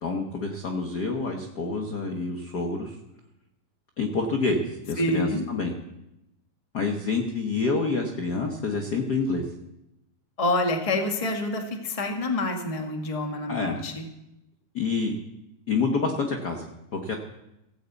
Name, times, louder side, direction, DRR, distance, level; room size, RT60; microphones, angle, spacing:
voice 1, 0.0-3.0 4.0-5.7 6.7-9.5 13.5-13.8 14.7-15.2 15.7-17.1, left 4 dB, 70° left, 3 dB, 0.9 m, -27 dB
voice 2, 5.0-5.5 10.4-14.1, left 2 dB, 25° left, 3 dB, 0.8 m, -27 dB
15.5 x 8.0 x 8.3 m, 0.89 s
omnidirectional pair, 3.6 m